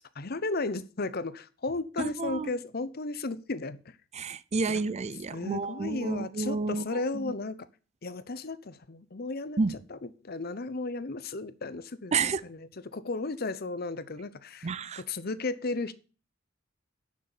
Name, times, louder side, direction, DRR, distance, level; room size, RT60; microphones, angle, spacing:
voice 1, 0.1-4.0 4.7-4.8 5.3-7.7 8.0-15.9, left 3 dB, 50° left, 0.8 m, -35 dB
voice 2, 2.0-2.5 4.2-6.8 9.6-9.7 12.1-12.4 14.6-15.0, right 4 dB, 35° right, 0.5 m, -30 dB
10.5 x 6.5 x 7.0 m
head